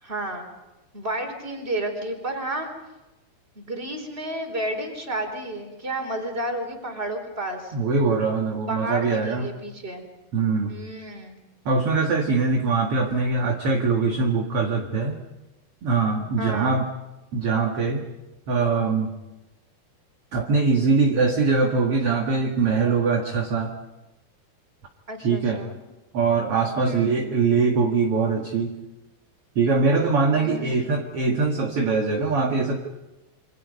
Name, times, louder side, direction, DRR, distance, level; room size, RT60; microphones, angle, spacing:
voice 1, 0.0-0.5 0.9-2.7 3.5-7.7 8.7-10.0 10.7-11.4 16.4-16.8 25.1-25.8 26.8-27.2 30.4-30.9, right 1 dB, 15° right, 5 dB, 4.2 m, -31 dB
voice 2, 7.7-9.5 10.3-10.7 11.7-15.2 15.8-16.9 17.3-18.0 18.5-19.1 20.3-23.7 25.2-25.6 26.1-28.7 29.6-32.8, right 4 dB, 45° right, 2 dB, 2.2 m, -22 dB
28.0 x 25.5 x 5.4 m, 1.0 s
omnidirectional pair, 4.5 m